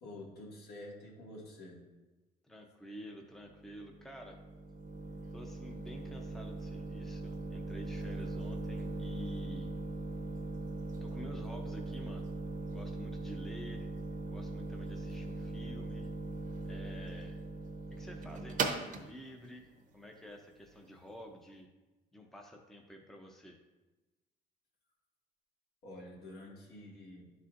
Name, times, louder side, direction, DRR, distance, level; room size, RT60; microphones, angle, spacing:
voice 1, 0.0-1.9 25.8-27.3, left 1 dB, 70° left, -3 dB, 1.9 m, -48 dB
voice 2, 2.4-4.4 5.3-9.7 11.0-12.3 12.7-13.8 14.3-16.1 16.7-17.4 17.9-19.7 19.9-21.7 22.1-23.6, equal, ahead, 2 dB, 0.6 m, -50 dB
sound 1, 3.5-21.1, right 2 dB, 50° right, 0.8 m, -40 dB
11.0 x 4.2 x 2.5 m, 1.1 s
cardioid pair, 110°, 17 cm